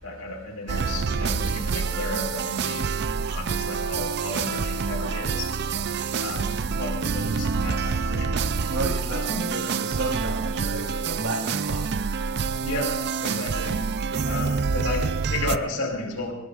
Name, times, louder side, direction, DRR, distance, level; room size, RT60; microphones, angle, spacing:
voice 1, 0.0-2.9 3.3-5.5 6.2-8.4 9.1-9.5 12.6-13.8 14.2-16.3, left 2 dB, 75° left, 1 dB, 4.5 m, -33 dB
sound 1, 0.7-15.6, right 5 dB, 50° right, 0.5 m, -27 dB
voice 2, 8.7-11.9, right 2 dB, 65° right, 0 dB, 3.8 m, -32 dB
26.5 x 19.0 x 2.5 m, 0.83 s
head